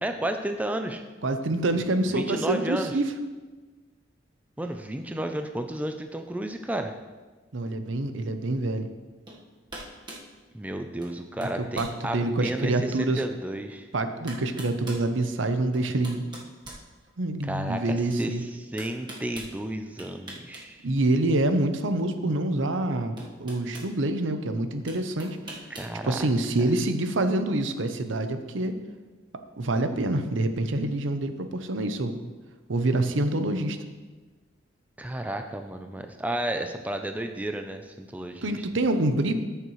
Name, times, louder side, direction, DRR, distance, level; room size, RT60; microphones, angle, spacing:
voice 1, 0.0-1.0 2.1-2.9 4.6-6.9 10.5-13.9 17.4-20.9 25.7-26.3 35.0-38.7, right 1 dB, 10° right, 6 dB, 0.4 m, -32 dB
voice 2, 1.2-3.1 7.5-8.9 11.8-13.2 13.9-16.3 17.2-18.4 20.8-23.1 23.4-25.4 26.0-28.7 29.6-32.2 32.7-33.8 38.4-39.3, right 2 dB, 75° right, 8 dB, 0.7 m, -26 dB
sound 1, 9.3-9.4 9.7-10.3 11.0-11.2 11.4-12.0 12.6-12.7 13.8-13.9 14.3-15.1 15.7-17.4 18.8-19.5 20.0-20.7 21.0-21.1 22.5-22.6 23.2-23.9 24.9-25.9, right 1 dB, 25° right, 1.3 m, -42 dB
13.5 x 6.7 x 3.1 m, 1.3 s
head